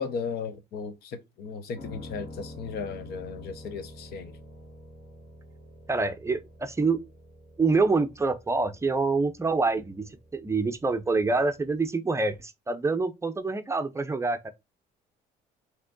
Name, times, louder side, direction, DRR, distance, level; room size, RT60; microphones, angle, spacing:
voice 1, 0.0-4.4, left 5 dB, 70° left, 0.8 m, -36 dB
Piano, 1.7-11.9, left 1 dB, 45° left, 2.8 m, -48 dB
voice 2, 5.9-7.0 7.6-10.1 10.3-14.5, right 3 dB, 15° right, 0.5 m, -26 dB
5.7 x 2.9 x 2.6 m
cardioid pair, 110°, 17 cm